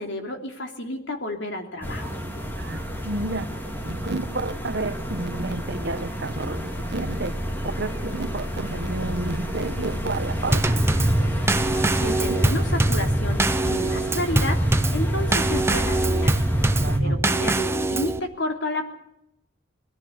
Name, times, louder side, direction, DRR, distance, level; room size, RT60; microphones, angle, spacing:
voice 1, 0.0-2.2 11.6-16.4 17.0-18.9, left 1 dB, 60° left, 4 dB, 3.1 m, -31 dB
sound 1, 1.8-17.0, equal, 10° left, 2.2 m, -30 dB
voice 2, 2.6-3.5 3.8-7.3 7.6-10.8 12.3-12.4 16.8-17.2, right 2 dB, 55° right, 11 dB, 1.2 m, -30 dB
Drum kit / Snare drum / Bass drum, 10.5-18.2, right 2 dB, 10° right, 0.8 m, -23 dB
21.0 x 14.5 x 8.7 m, 0.80 s
head